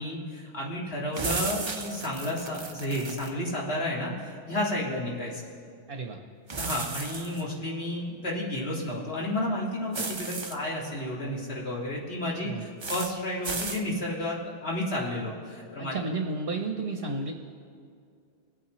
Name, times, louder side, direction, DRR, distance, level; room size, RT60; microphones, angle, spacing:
voice 1, 0.0-5.4 6.5-16.0, left 1 dB, 60° left, -4 dB, 2.2 m, -32 dB
sound 1, 1.1-3.3 6.5-7.4 9.9-10.5 12.8-13.1 13.4-13.8, right 4 dB, 30° right, 0.5 m, -34 dB
voice 2, 5.9-6.2 12.4-12.7 15.8-17.3, right 3 dB, 55° right, 3 dB, 1.0 m, -32 dB
24.0 x 8.7 x 3.1 m, 2.3 s
omnidirectional pair, 1.2 m